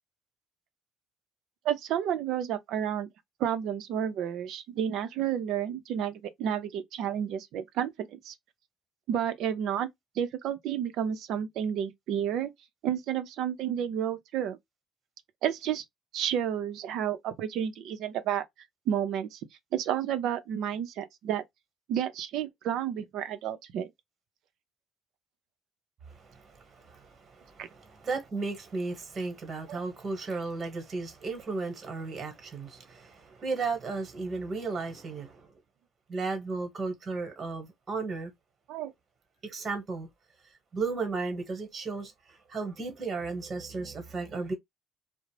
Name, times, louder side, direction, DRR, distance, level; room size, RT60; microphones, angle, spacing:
voice 1, 1.6-3.1 3.4-8.3 9.1-9.9 10.2-12.5 12.8-14.6 15.4-15.8 16.1-18.4 18.9-19.4 19.7-21.4 21.9-23.9 27.6-27.7 29.7-29.8 38.7-38.9, right 9 dB, 75° right, 0.5 m, -31 dB
voice 2, 26.1-35.5 36.1-38.3 39.4-40.1 40.7-44.5, right 4 dB, 40° right, 1.1 m, -35 dB
2.4 x 2.0 x 3.1 m
supercardioid pair, 85°, 0 cm